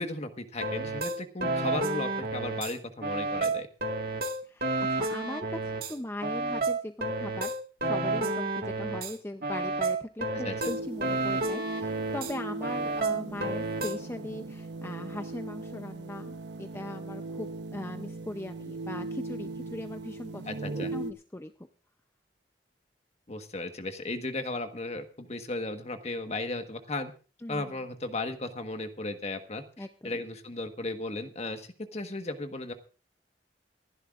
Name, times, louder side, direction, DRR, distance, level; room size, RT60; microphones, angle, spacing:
voice 1, 0.0-3.7 10.3-10.7 20.4-20.9 23.3-27.1 27.5-32.7, left 2 dB, 40° left, 7 dB, 1.4 m, -35 dB
sound 1, 0.6-2.7 3.0-5.9 6.2-9.1 9.4-12.3 12.6-14.0, right 2 dB, 55° right, 1.9 m, -30 dB
voice 2, 4.4-7.5 7.8-21.5 27.4-27.7 29.8-30.2, left 1 dB, 15° left, 7 dB, 0.6 m, -39 dB
sound 2, 10.6-21.1, right 2 dB, 80° right, 1.0 m, -39 dB
26.5 x 11.5 x 2.5 m, 0.36 s
head